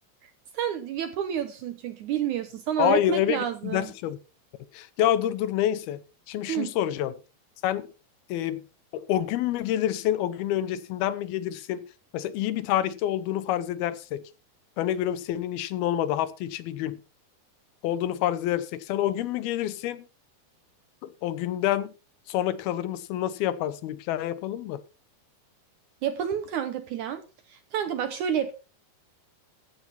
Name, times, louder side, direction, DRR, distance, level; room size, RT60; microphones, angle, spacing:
voice 1, 0.5-3.9 6.5-6.7 26.0-27.2 27.5-28.5, right 9 dB, 75° right, 1.9 m, -29 dB
voice 2, 2.8-4.2 4.7-6.0 6.3-7.1 7.6-7.9 8.3-8.6 8.9-11.8 12.1-14.2 14.8-17.0 17.8-20.0 21.0-21.9 22.3-24.8, left 12 dB, 80° left, 2.8 m, -27 dB
15.0 x 9.5 x 4.3 m
omnidirectional pair, 4.4 m